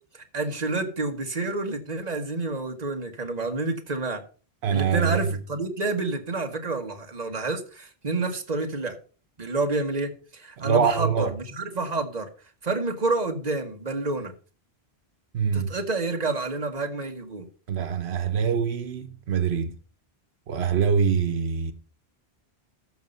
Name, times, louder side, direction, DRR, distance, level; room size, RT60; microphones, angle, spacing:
voice 1, 0.1-4.2 4.7-9.0 9.4-11.3 11.6-12.3 12.6-14.3 15.5-17.5, right 3 dB, 40° right, 1.5 m, -29 dB
voice 2, 4.6-5.4 10.6-11.3 15.3-15.7 17.7-19.8 20.5-21.7, right 6 dB, 85° right, 1.1 m, -24 dB
13.5 x 5.5 x 5.3 m
omnidirectional pair, 1.1 m